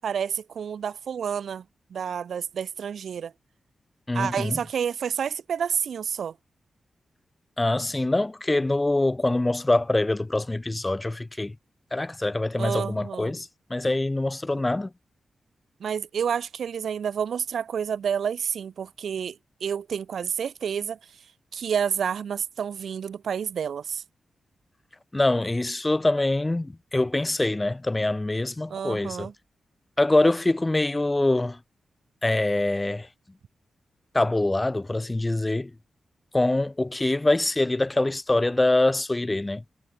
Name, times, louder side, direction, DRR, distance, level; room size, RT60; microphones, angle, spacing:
voice 1, 0.0-1.6 1.9-3.3 4.1-6.3 12.6-13.4 15.8-21.0 21.5-24.0 28.7-29.3, right 7 dB, 80° right, 6.2 m, -29 dB
voice 2, 4.1-4.6 7.6-11.5 11.9-14.9 25.1-29.3 30.0-31.6 32.2-33.1 34.1-35.7 36.3-39.6, left 2 dB, 25° left, 3.7 m, -24 dB
cardioid pair, 50°, 0 cm